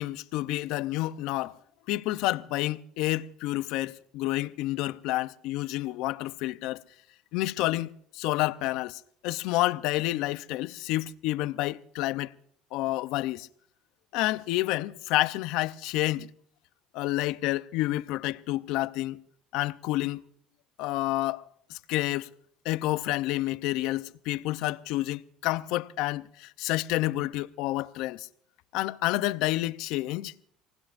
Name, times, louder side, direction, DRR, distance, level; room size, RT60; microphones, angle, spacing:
voice 1, 0.0-1.6 1.9-6.8 7.3-12.3 12.7-13.5 14.1-16.3 16.9-19.2 19.5-20.2 20.8-21.4 21.7-22.3 22.6-28.3 28.7-30.3, left 17 dB, 75° left, 0.6 m, -29 dB
26.0 x 19.5 x 2.5 m
cardioid pair, 130°, 0 cm